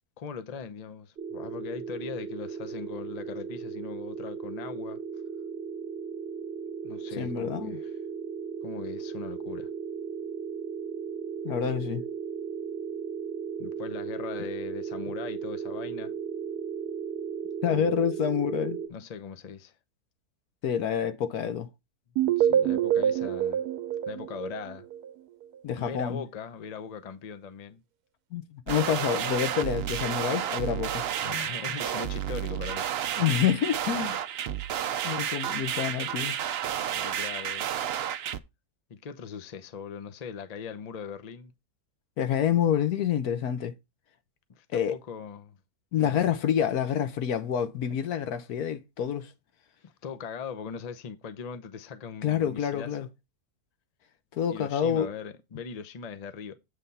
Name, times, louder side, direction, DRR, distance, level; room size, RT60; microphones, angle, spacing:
voice 1, 0.2-5.0 6.8-8.0 8.6-9.7 13.6-16.1 17.7-17.9 18.9-19.7 22.2-23.6 24.1-24.9 25.8-27.8 29.8-29.9 31.2-33.2 36.9-37.7 38.9-41.5 44.5-45.6 45.9-46.3 49.8-53.1 54.5-56.6, left 6 dB, 40° left, 0.6 m, -40 dB
sound 1, 1.2-18.9, right 7 dB, 45° right, 1.1 m, -36 dB
voice 2, 7.2-7.8 11.4-12.0 17.6-18.8 20.6-21.7 25.6-26.2 28.3-31.1 33.2-34.2 35.0-36.4 42.2-43.7 44.7-45.0 45.9-49.3 52.2-53.1 54.3-55.1, left 9 dB, 75° left, 1.3 m, -27 dB
sound 2, 22.2-25.1, right 10 dB, 80° right, 1.2 m, -26 dB
sound 3, 28.7-38.4, right 10 dB, 65° right, 0.6 m, -31 dB
8.1 x 3.4 x 5.4 m
omnidirectional pair, 1.6 m